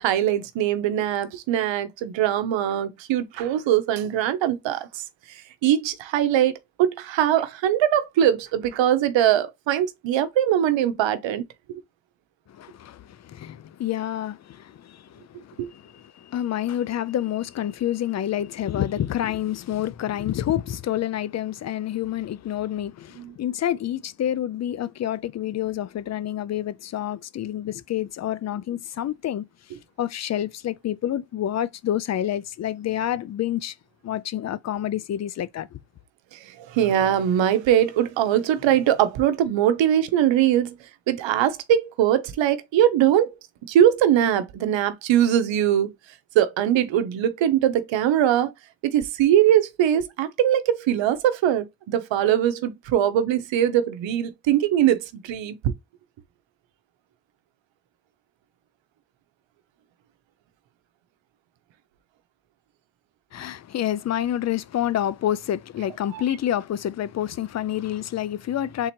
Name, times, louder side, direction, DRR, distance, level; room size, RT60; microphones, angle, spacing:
voice 1, 0.0-5.0 5.3-11.4 15.6-15.7 23.2-23.3 36.3-40.8 41.1-43.3 43.6-45.9 46.3-48.5 48.8-55.7 66.1-66.2, right 11 dB, 75° right, 0.8 m, -21 dB
voice 2, 12.5-29.5 30.0-33.8 34.0-35.8 63.3-68.9, left 11 dB, 40° left, 0.4 m, -28 dB
3.8 x 2.9 x 4.3 m
cardioid pair, 95°, 45 cm